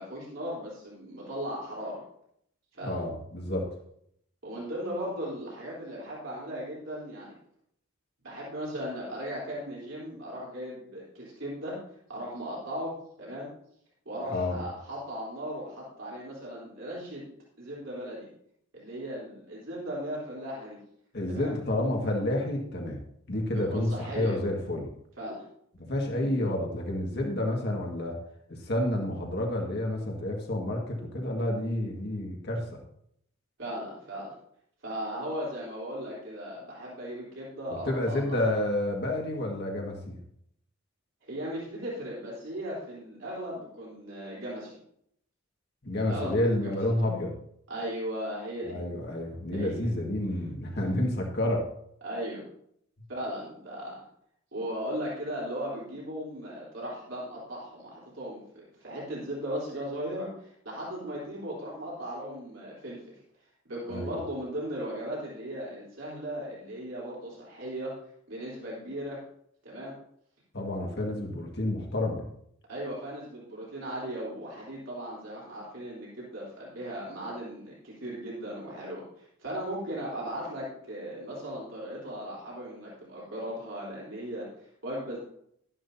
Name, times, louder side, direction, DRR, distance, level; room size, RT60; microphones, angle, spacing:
voice 1, 0.0-2.0 2.7-3.0 4.4-7.4 8.2-11.8 12.1-13.5 14.1-17.3 17.6-18.3 18.7-20.8 21.3-21.5 23.5-24.4 25.2-25.4 33.6-34.3 34.8-38.2 41.2-44.7 46.1-46.8 47.7-48.8 49.5-49.9 52.0-52.4 53.1-54.0 54.5-63.1 63.7-67.9 68.3-69.2 69.6-69.9 72.7-85.2, equal, 70° right, -6 dB, 3.8 m, -37 dB
voice 2, 2.8-3.7 14.3-14.6 21.1-23.0 23.3-24.9 25.9-28.2 28.5-32.7 37.9-40.2 45.8-47.3 48.6-51.7 63.9-64.1 70.5-72.2, left 1 dB, 55° left, 0 dB, 1.9 m, -29 dB
12.5 x 11.0 x 2.8 m, 0.70 s
head